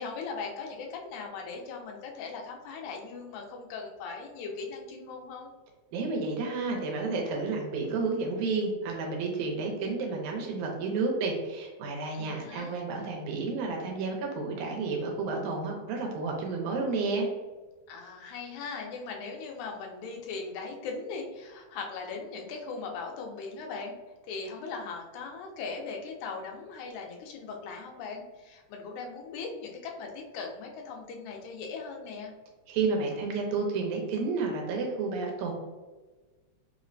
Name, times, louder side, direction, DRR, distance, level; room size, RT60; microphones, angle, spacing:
voice 1, 0.0-5.5 12.1-12.8 17.9-24.0 24.2-32.3, left 4 dB, 80° left, 1 dB, 2.0 m, -39 dB
voice 2, 5.9-17.3 32.7-35.5, right 4 dB, 80° right, 1 dB, 2.1 m, -31 dB
4.9 x 2.1 x 2.5 m, 1.2 s
omnidirectional pair, 3.5 m